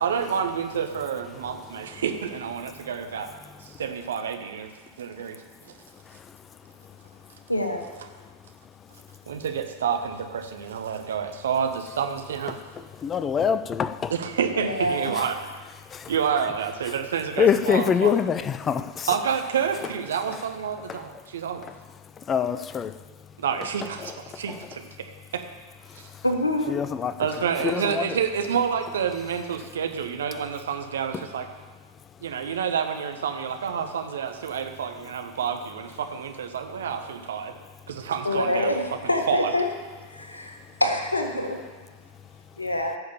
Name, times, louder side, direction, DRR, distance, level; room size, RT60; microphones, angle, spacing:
voice 1, 0.0-3.3 3.6-4.7 5.0-5.4 5.6-5.7 9.3-12.6 14.1-15.3 16.1-18.1 19.1-21.6 23.4-25.4 25.9-26.1 27.2-31.5 32.2-37.5 37.9-38.8 39.0-39.5, right 7 dB, 65° right, 1.3 m, -29 dB
voice 2, 7.5-7.9 14.5-15.1 26.2-26.7 38.2-39.7 40.1-41.6 42.6-43.0, left 1 dB, 85° left, 1.6 m, -26 dB
voice 3, 12.7-14.1 15.9-16.0 17.4-19.1 20.9-21.1 22.2-23.0 24.0-24.1 24.5-24.6 25.9-26.2 26.7-27.3 27.6-28.1 31.1-31.2, left 7 dB, 25° left, 0.5 m, -25 dB
15.5 x 6.6 x 7.2 m
figure-of-eight pair, 90°, 0 cm